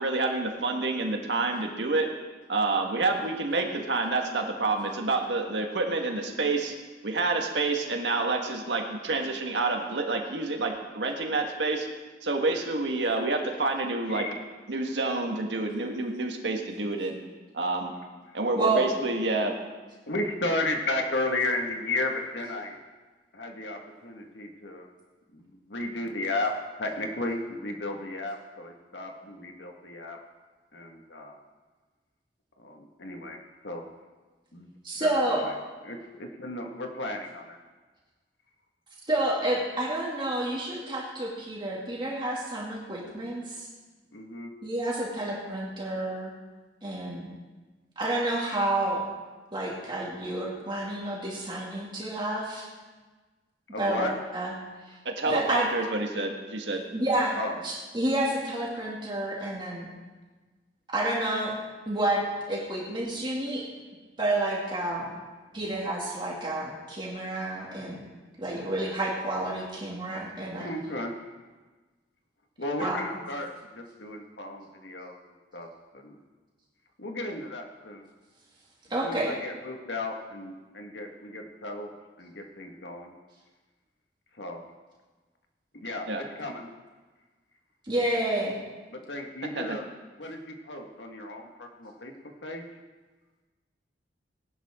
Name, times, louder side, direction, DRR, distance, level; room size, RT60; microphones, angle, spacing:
voice 1, 0.0-2.1 2.5-6.7 7.0-11.9 12.2-14.3 14.7-17.2 17.5-17.9 18.3-19.5 55.0-56.8 86.1-86.2 89.6-89.8, right 3 dB, 85° right, 2 dB, 1.6 m, -28 dB
voice 2, 14.1-14.4 20.1-22.7 23.3-24.9 25.3-26.5 26.8-30.2 30.7-31.4 32.6-33.4 33.6-33.9 34.5-34.7 35.0-35.5 35.8-37.6 44.1-44.5 53.7-54.1 57.4-57.6 70.6-71.1 72.6-75.2 75.5-75.7 75.9-76.2 77.0-78.1 79.0-81.9 82.2-83.1 84.4-84.7 85.7-86.7 88.9-89.9 90.2-92.1 92.4-92.6, left 2 dB, 85° left, 2 dB, 1.7 m, -34 dB
voice 3, 18.6-18.9 34.8-35.4 39.1-43.7 44.6-46.3 46.8-47.3 48.0-49.1 49.5-52.7 53.8-54.5 54.8-55.0 55.3-55.7 56.9-59.9 60.9-61.5 61.9-63.7 64.2-65.1 65.5-68.1 68.4-70.7 72.8-73.0 78.9-79.3 87.8-88.6, right 1 dB, 25° right, -4 dB, 2.3 m, -29 dB
18.5 x 11.5 x 3.7 m, 1.3 s
head